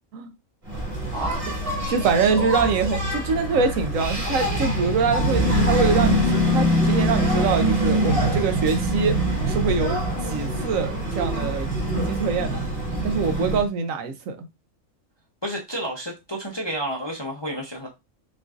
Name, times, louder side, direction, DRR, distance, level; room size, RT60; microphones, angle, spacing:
Engine, 0.7-13.7, right 1 dB, 25° right, 1.3 m, -24 dB
voice 1, 1.1-1.6 15.4-17.9, right 1 dB, 25° left, 0.6 m, -30 dB
voice 2, 1.9-9.2 9.5-12.6 13.0-14.4, right 5 dB, 70° right, 1.0 m, -24 dB
5.9 x 2.6 x 2.4 m
omnidirectional pair, 1.5 m